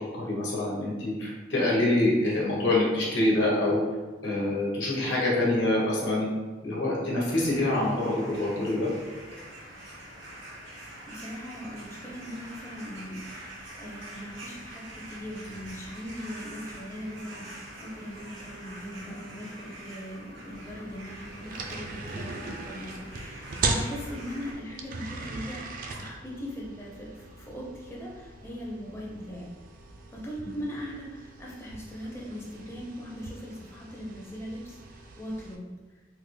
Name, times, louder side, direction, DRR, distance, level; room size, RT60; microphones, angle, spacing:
voice 1, 0.1-3.8 4.2-6.3 6.6-8.9, left 1 dB, 85° left, -5 dB, 1.1 m, -25 dB
sound 1, 7.2-24.5, right 1 dB, 80° right, 1.0 m, -45 dB
voice 2, 11.1-29.5 30.1-35.7, equal, 15° left, -4 dB, 0.4 m, -40 dB
sound 2, 20.5-35.6, right 3 dB, 50° right, 0.3 m, -39 dB
3.4 x 2.1 x 3.2 m, 1.3 s
head